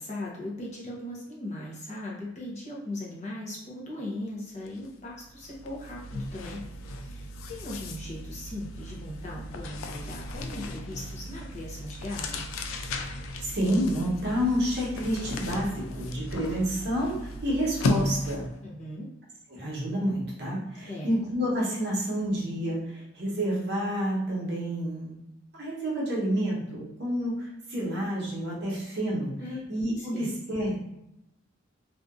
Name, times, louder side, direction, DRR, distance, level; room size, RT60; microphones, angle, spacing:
voice 1, 0.0-6.6 7.0-12.4 18.6-19.1 20.9-21.1 29.4-29.6 30.0-30.3, left 1 dB, 35° left, -4 dB, 0.6 m, -38 dB
sound 1, 4.7-4.9 5.2-18.6, left 2 dB, 85° left, 0.3 m, -35 dB
voice 2, 13.4-18.5 19.5-25.2 25.5-29.3 29.7-30.8, equal, 55° right, -4 dB, 0.8 m, -29 dB
2.6 x 2.3 x 2.4 m, 0.87 s
head